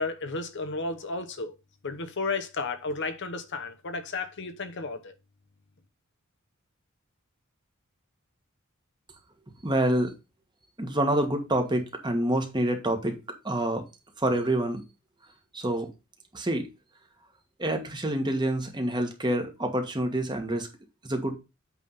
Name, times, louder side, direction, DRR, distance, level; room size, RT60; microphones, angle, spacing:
voice 1, 0.0-1.5 1.8-5.1, left 3 dB, 55° left, 0.9 m, -33 dB
voice 2, 9.6-10.1 10.8-13.8 14.2-14.8 15.5-15.9 16.3-16.7 17.6-20.7 21.0-21.4, right 1 dB, 20° right, 1.4 m, -27 dB
8.3 x 3.6 x 5.5 m
head